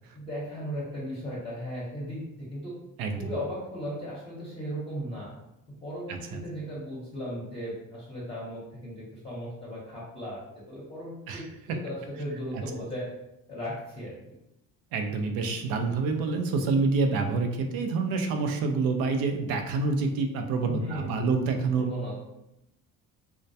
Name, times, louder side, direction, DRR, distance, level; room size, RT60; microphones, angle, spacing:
voice 1, 0.1-2.7 3.1-5.3 5.7-10.4 10.7-13.1 13.5-14.2 20.7-21.5 21.8-22.2, equal, 15° left, -7 dB, 0.7 m, -37 dB
voice 2, 3.0-3.3 6.1-6.4 11.3-11.4 11.7-11.8 12.5-12.6 14.9-21.9, right 4 dB, 80° right, 5 dB, 0.5 m, -27 dB
2.2 x 2.2 x 2.6 m, 0.87 s
supercardioid pair, 85°, 35 cm